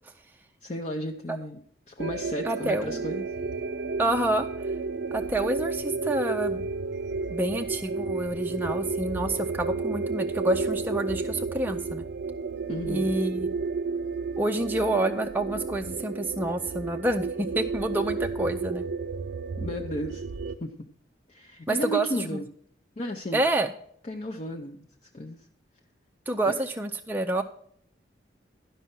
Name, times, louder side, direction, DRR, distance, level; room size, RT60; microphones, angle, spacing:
voice 1, 0.6-1.6 1.9-3.3 12.7-13.1 19.6-20.2 20.6-20.7 21.3-22.4 23.0-23.4 24.1-24.8 25.1-25.4 26.5-26.6, equal, 35° left, 1 dB, 0.6 m, -33 dB
sound 1, 2.0-20.6, right 4 dB, 70° right, 0.5 m, -32 dB
voice 2, 2.4-3.1 4.0-4.5 5.1-6.6 7.3-12.0 12.9-13.5 14.4-18.8 21.7-22.4 23.3-23.7 26.3-27.4, right 1 dB, 10° right, 4 dB, 0.4 m, -28 dB
11.5 x 5.4 x 5.8 m, 0.64 s
head